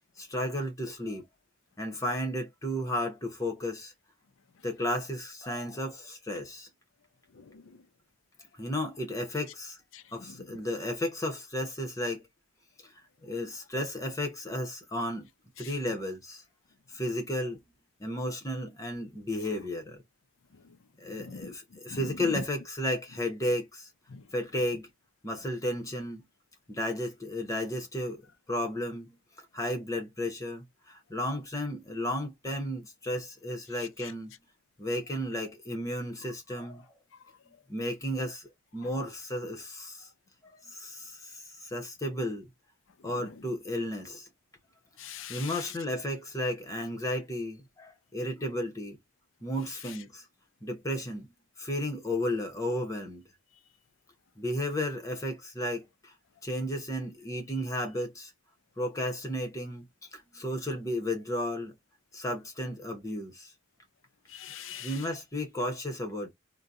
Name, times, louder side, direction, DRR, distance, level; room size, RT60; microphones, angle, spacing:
voice 1, 0.2-1.2 1.8-3.9 4.6-6.7 8.6-9.8 10.1-12.3 12.8-12.9 13.2-15.3 15.6-16.4 16.9-17.6 18.0-20.0 21.0-23.9 24.3-24.9 25.2-26.2 26.7-28.2 28.5-29.2 29.5-34.3 34.8-36.8 37.7-40.1 40.7-42.5 43.0-44.3 45.3-49.0 49.4-50.2 50.6-51.3 51.6-53.2 54.4-56.1 56.4-58.3 58.8-59.8 60.1-61.8 62.1-63.5 64.8-66.3, left 1 dB, 15° left, 0.8 m, -33 dB
voice 2, 7.3-7.8 9.9-10.5 15.6-15.7 19.5-19.6 20.6-20.8 21.2-21.5 21.9-22.4 24.1-24.2 34.0-34.1 43.0-43.3 45.0-45.7 64.3-65.1, left 6 dB, 70° left, 0.5 m, -43 dB
2.7 x 2.2 x 3.5 m
head